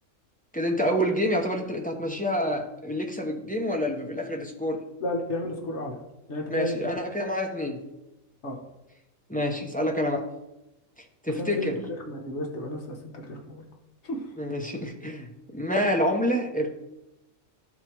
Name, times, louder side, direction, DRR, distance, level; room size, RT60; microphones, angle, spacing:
voice 1, 0.5-4.8 6.5-7.8 9.3-10.2 11.2-11.8 14.4-16.7, equal, 10° left, 1 dB, 0.7 m, -27 dB
voice 2, 5.0-5.9 6.3-6.7 8.4-8.6 11.3-11.7 12.1-13.6 14.0-14.2, left 1 dB, 55° left, 1 dB, 1.4 m, -32 dB
12.5 x 4.2 x 4.5 m, 0.94 s
omnidirectional pair, 1.5 m